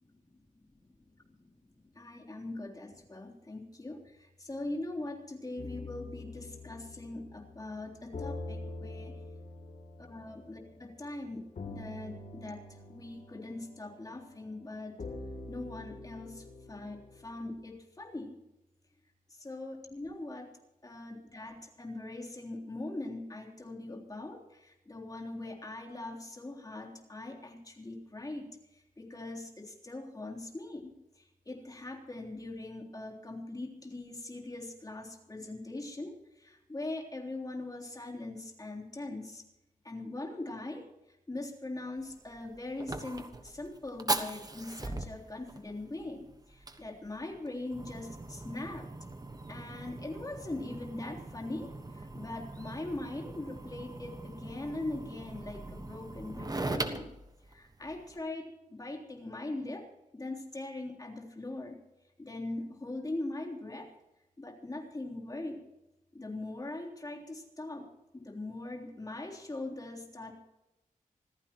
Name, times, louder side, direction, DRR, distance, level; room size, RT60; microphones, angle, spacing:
voice 1, 0.5-0.9 1.8-9.2 10.0-15.0 15.5-18.4 19.3-20.5 20.8-39.4 39.8-48.9 49.5-57.1 57.5-59.8 60.1-61.8 62.2-63.9 64.4-65.6 66.1-67.9 68.1-70.3, left 2 dB, 25° left, -1 dB, 3.4 m, -41 dB
sound 1, 5.6-17.7, left 2 dB, 65° left, 3.0 m, -45 dB
Fire, 42.0-58.2, right 2 dB, 25° right, 1.3 m, -41 dB
26.0 x 15.0 x 3.0 m, 0.94 s
wide cardioid pair, 140°, 14 cm